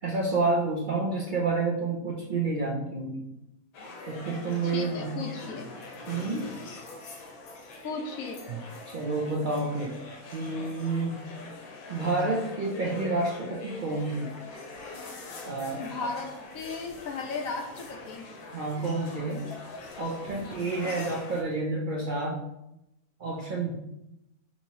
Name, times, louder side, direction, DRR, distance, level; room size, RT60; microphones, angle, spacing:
voice 1, 0.0-3.3 4.1-5.2 6.1-6.5 8.5-8.6 8.9-10.0 10.3-11.2 11.9-14.3 15.4-16.1 18.5-19.4 20.0-22.5 23.2-23.7, right 3 dB, 75° right, -3 dB, 0.4 m, -29 dB
sound 1, 3.7-21.4, left 3 dB, 90° left, 1.3 m, -43 dB
voice 2, 4.6-5.7 7.8-8.4 15.8-18.3, left 4 dB, 70° left, 2 dB, 1.1 m, -36 dB
5.7 x 2.8 x 2.8 m, 0.87 s
omnidirectional pair, 1.6 m